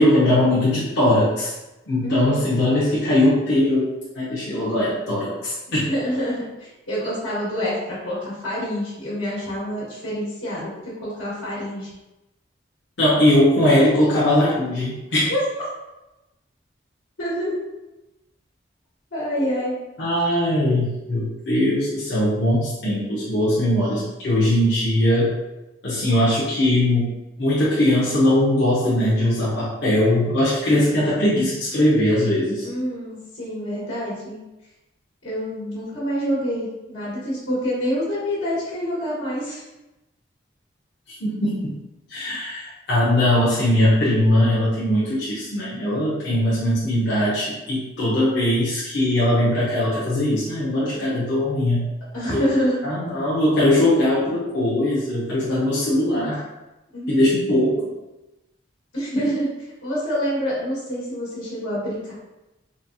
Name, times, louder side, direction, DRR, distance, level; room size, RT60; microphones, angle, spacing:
voice 1, 0.0-1.5 1.9-5.9 13.0-15.3 20.0-25.3 25.8-27.1 27.4-32.7 41.2-41.8 42.1-51.9 52.3-52.5 52.8-56.4 57.1-57.8, left 1 dB, 60° left, -8 dB, 0.7 m, -20 dB
voice 2, 2.0-2.4 5.7-11.9 15.3-15.4 17.2-17.5 19.1-19.8 32.6-34.4 35.2-39.6 52.1-52.8 56.9-57.3 58.9-59.5 59.8-62.1, equal, 85° left, -9 dB, 1.4 m, -27 dB
4.0 x 2.3 x 2.6 m, 0.99 s
head